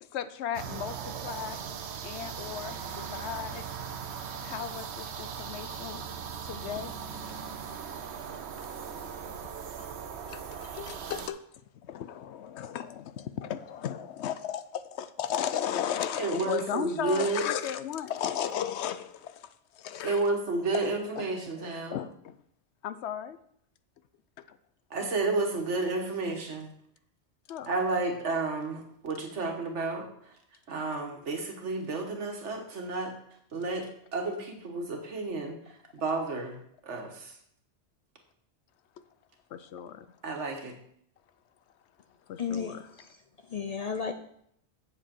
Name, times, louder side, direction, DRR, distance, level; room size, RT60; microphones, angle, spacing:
voice 1, 0.0-3.7 4.4-6.0 6.4-6.9 9.2-9.5 10.3-11.4 11.7-20.3 21.2-22.4 22.8-23.4 24.5-24.6 27.5-27.7 39.0-39.1 39.5-40.2 42.3-42.9, left 9 dB, 75° left, 13 dB, 0.9 m, -36 dB
sound 1, 0.5-11.3, right 7 dB, 75° right, 1.0 m, -39 dB
voice 2, 16.2-17.4 20.0-22.0 24.9-26.7 27.7-30.3 30.7-33.1 33.5-36.6 36.8-37.3 40.2-40.7, right 3 dB, 90° right, 3 dB, 1.7 m, -31 dB
voice 3, 42.4-43.1 43.5-44.1, left 6 dB, 50° left, 7 dB, 0.5 m, -33 dB
7.6 x 7.5 x 4.5 m, 0.69 s
omnidirectional pair, 1.2 m